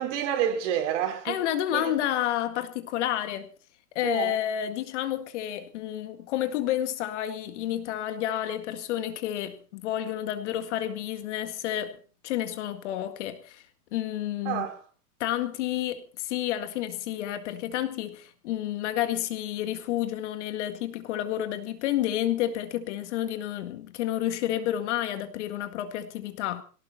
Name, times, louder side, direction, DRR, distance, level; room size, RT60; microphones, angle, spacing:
voice 1, 0.0-1.4 1.7-2.0 4.0-4.4 14.4-14.8, right 10 dB, 45° right, 4.2 m, -29 dB
voice 2, 1.3-3.5 4.0-12.0 12.2-13.6 13.9-14.7 15.2-26.6, left 12 dB, 45° left, 2.0 m, -30 dB
18.5 x 17.5 x 4.2 m
hypercardioid pair, 160°, 47 cm